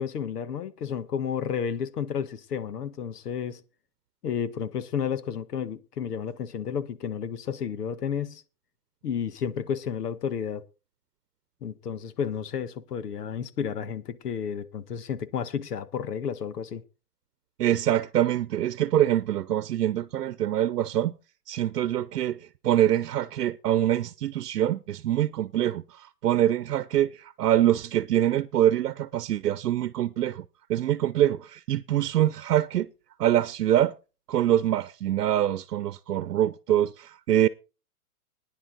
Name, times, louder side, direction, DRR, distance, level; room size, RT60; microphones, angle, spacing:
voice 1, 0.0-3.6 4.2-8.4 9.0-10.6 11.6-16.8, left 7 dB, 80° left, 1.5 m, -31 dB
voice 2, 17.6-21.1 21.5-22.4 22.6-30.4 30.7-32.9 33.2-33.9 34.3-37.5, right 12 dB, 80° right, 0.9 m, -24 dB
16.0 x 10.0 x 4.0 m
hypercardioid pair, 165°, 46 cm